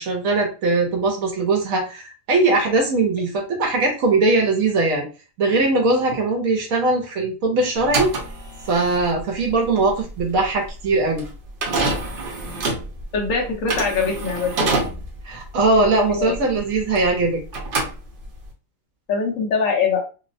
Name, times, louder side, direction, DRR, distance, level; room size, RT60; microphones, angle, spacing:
voice 1, 0.0-5.1 5.4-8.1 8.7-11.3 15.2-17.4, right 3 dB, 85° right, 0 dB, 1.1 m, -20 dB
sound 1, 7.8-17.2 17.5-18.5, right 3 dB, 50° right, 0.7 m, -27 dB
voice 2, 13.1-14.8 16.1-16.3 19.1-20.0, left 5 dB, 80° left, -1 dB, 1.3 m, -22 dB
3.3 x 2.0 x 2.6 m, 0.33 s
omnidirectional pair, 1.4 m